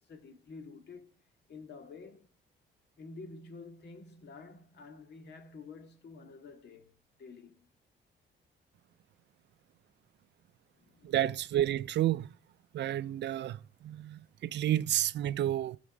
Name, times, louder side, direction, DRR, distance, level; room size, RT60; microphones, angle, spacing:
voice 1, 0.1-1.2 1.5-2.3 3.0-6.9 7.2-7.6 10.8-11.1, left 4 dB, 60° left, 1.9 m, -49 dB
voice 2, 11.0-12.3 12.7-15.8, right 12 dB, 65° right, 0.4 m, -31 dB
14.5 x 5.0 x 4.9 m
cardioid pair, 90°, 20 cm